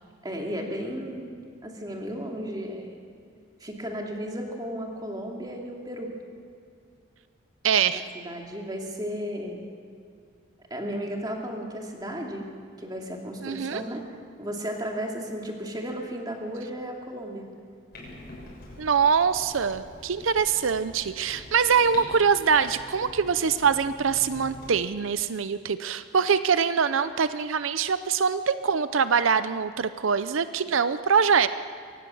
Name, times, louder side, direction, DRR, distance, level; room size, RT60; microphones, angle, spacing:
voice 1, 0.2-1.3 1.6-2.9 3.6-6.1 8.1-9.7 10.7-12.5 12.8-14.0 14.4-17.5, equal, 20° right, 0 dB, 2.7 m, -34 dB
voice 2, 7.6-8.1 13.4-13.8 18.8-31.5, right 6 dB, 85° right, 13 dB, 0.6 m, -24 dB
Clock, 17.9-24.7, left 1 dB, 50° left, 6.8 m, -45 dB
23.5 x 18.0 x 7.1 m, 2.3 s
head